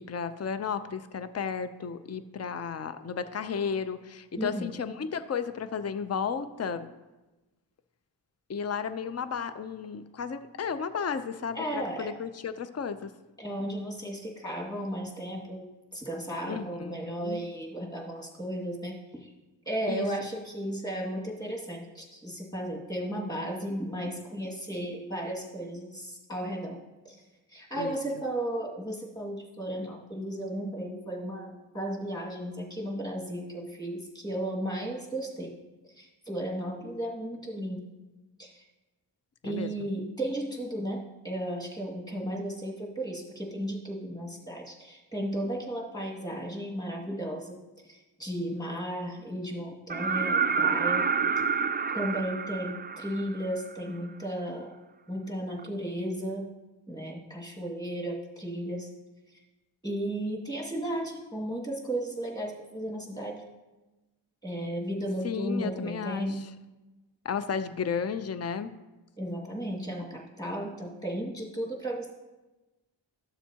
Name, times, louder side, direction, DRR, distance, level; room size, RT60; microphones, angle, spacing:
voice 1, 0.0-6.9 8.5-13.1 16.5-17.4 19.9-20.1 27.8-27.9 39.4-39.7 65.2-66.4 67.2-68.7, left 6 dB, 35° left, 12 dB, 0.6 m, -33 dB
voice 2, 4.4-4.7 11.5-12.2 13.4-19.3 19.7-27.2 27.5-35.6 35.9-37.9 38.4-38.6 39.4-47.6 47.8-51.1 51.9-54.7 55.1-56.5 56.9-58.9 59.3-59.4 59.8-63.4 64.4-66.5 69.2-72.1, right 1 dB, 10° left, -2 dB, 2.1 m, -34 dB
sound 1, 49.9-53.7 55.6-55.7, right 6 dB, 20° right, 0.4 m, -28 dB
12.5 x 7.1 x 2.9 m, 1.1 s
cardioid pair, 40°, 46 cm